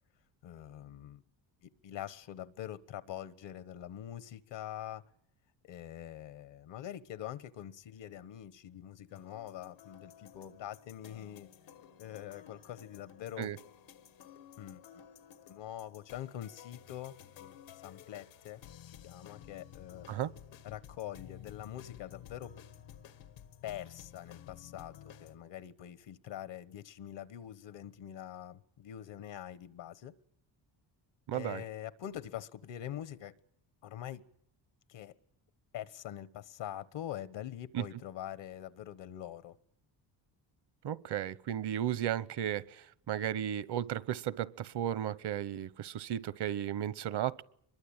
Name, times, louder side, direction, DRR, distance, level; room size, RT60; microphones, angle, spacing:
voice 1, 0.4-1.2 1.6-5.1 5.6-11.5 12.0-13.5 14.6-14.8 15.5-17.6 17.8-20.1 20.6-22.5 23.6-30.1 31.3-33.3 33.8-34.2 34.9-35.2 35.7-39.6, left 11 dB, 75° left, 1.3 m, -44 dB
sound 1, 9.1-25.4, left 10 dB, 90° left, 1.9 m, -54 dB
voice 2, 31.3-31.6 37.7-37.8 40.8-47.4, right 11 dB, 65° right, 1.0 m, -34 dB
24.5 x 22.0 x 8.9 m
cardioid pair, 100°, 44 cm